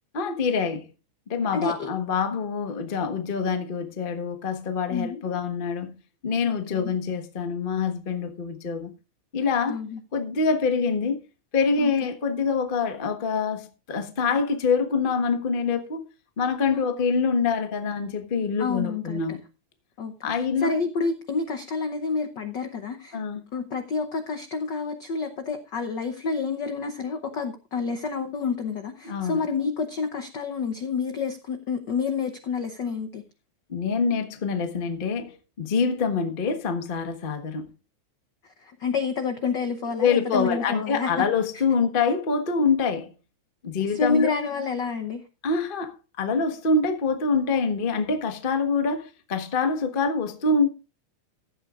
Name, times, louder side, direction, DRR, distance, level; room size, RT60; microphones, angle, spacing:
voice 1, 0.1-0.9 1.3-5.9 6.2-8.9 9.3-9.8 10.1-11.2 11.5-16.0 16.4-19.4 20.2-20.7 23.1-23.4 29.0-29.4 33.7-37.7 40.0-43.1 43.6-44.3 45.4-50.7, left 5 dB, 55° left, 0.5 m, -25 dB
voice 2, 1.5-1.9 4.9-5.2 6.4-6.9 9.7-10.0 11.8-12.1 16.7-16.9 18.6-19.4 20.0-20.1 20.6-23.2 23.5-33.2 38.4-41.1 43.9-45.2, left 5 dB, 80° left, 0.9 m, -29 dB
15.5 x 11.5 x 2.5 m
omnidirectional pair, 3.4 m